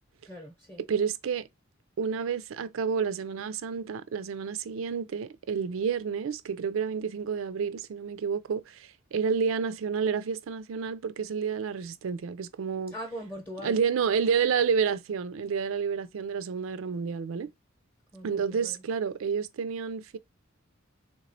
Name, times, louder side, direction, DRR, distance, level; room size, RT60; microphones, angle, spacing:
voice 1, 0.3-0.8 12.9-13.9 18.1-18.8, equal, 10° left, 0.8 m, -41 dB
voice 2, 0.9-1.5 2.0-12.9 13.6-17.5 18.2-20.2, right 6 dB, 75° right, 0.4 m, -30 dB
3.5 x 3.0 x 2.6 m
head